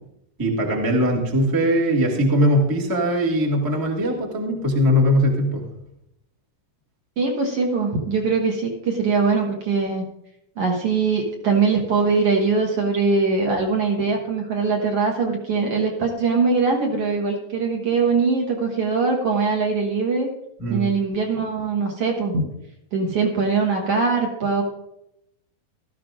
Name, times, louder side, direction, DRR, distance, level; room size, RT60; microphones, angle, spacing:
voice 1, 0.4-5.6 20.6-20.8, equal, 15° right, -2 dB, 0.6 m, -20 dB
voice 2, 7.2-10.0 10.6-20.3 20.7-22.4 22.9-24.6, right 4 dB, 55° right, 0 dB, 1.8 m, -22 dB
16.5 x 13.0 x 2.5 m, 0.82 s
omnidirectional pair, 4.0 m